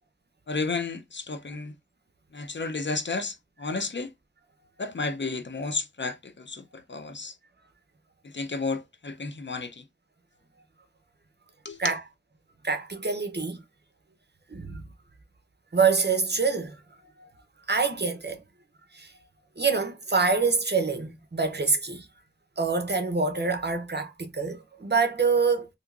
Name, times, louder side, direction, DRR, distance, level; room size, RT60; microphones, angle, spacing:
voice 1, 0.5-1.8 2.3-4.1 4.8-7.3 8.2-9.8 11.6-12.0, left 3 dB, 65° left, 0.6 m, -32 dB
voice 2, 12.6-13.6 14.5-14.8 15.7-16.8 17.2-17.3 17.7-18.4 18.9-19.1 19.6-22.1 22.6-25.7, right 4 dB, 55° right, 0.8 m, -26 dB
3.6 x 2.8 x 2.4 m
wide cardioid pair, 50°, 20 cm